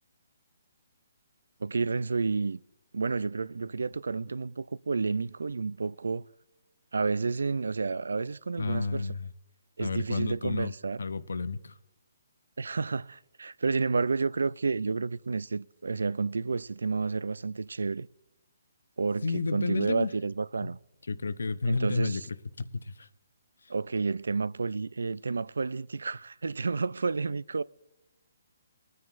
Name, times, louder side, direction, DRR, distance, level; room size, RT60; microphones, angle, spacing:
voice 1, 1.6-2.6 2.9-6.3 6.9-9.1 9.8-11.0 12.6-18.1 19.0-20.8 21.7-22.3 23.7-27.6, right 4 dB, 85° right, 0.3 m, -30 dB
voice 2, 8.6-9.3 9.8-11.8 19.2-20.1 20.6-20.7 21.1-23.1 23.6-23.7, left 4 dB, 85° left, 0.7 m, -31 dB
26.0 x 9.5 x 2.5 m
hypercardioid pair, 155°, 0 cm